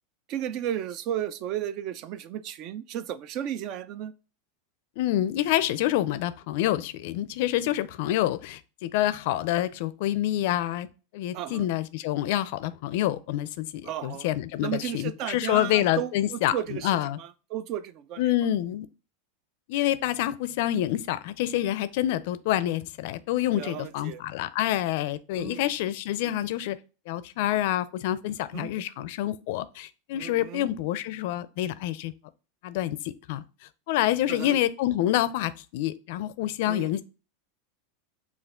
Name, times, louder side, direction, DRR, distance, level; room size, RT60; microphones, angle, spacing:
voice 1, 0.3-4.1 11.3-11.7 13.8-14.3 14.6-16.9 17.2-18.2 23.5-24.2 25.3-25.7 26.2-26.3 28.5-28.8 30.1-30.7 34.3-34.6 36.7-36.9, right 10 dB, 50° right, 0.4 m, -34 dB
voice 2, 5.0-10.9 11.1-17.2 18.2-18.9 19.7-26.8 27.1-32.1 32.6-33.4 33.9-37.0, left 13 dB, 65° left, 0.4 m, -27 dB
5.7 x 2.4 x 3.6 m
supercardioid pair, 120°, 0 cm